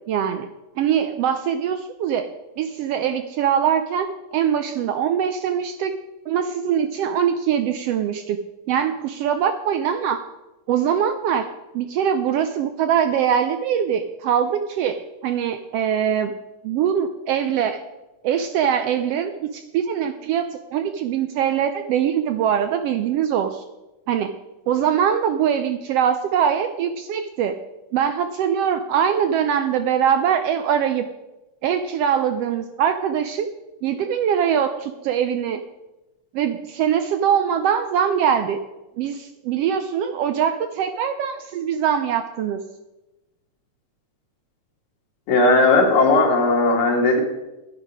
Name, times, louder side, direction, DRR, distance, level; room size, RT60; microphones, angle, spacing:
voice 1, 0.1-0.5 0.8-2.3 2.6-5.9 6.3-8.4 8.7-10.2 10.7-11.5 11.7-16.3 16.6-17.8 18.2-23.6 24.1-24.3 24.7-27.6 27.9-31.1 31.6-33.5 33.8-35.6 36.3-38.6 39.0-42.6, right 8 dB, 85° right, 8 dB, 1.3 m, -22 dB
voice 2, 45.3-47.2, left 2 dB, 75° left, -1 dB, 3.5 m, -17 dB
11.0 x 10.5 x 4.9 m, 1.0 s
omnidirectional pair, 3.4 m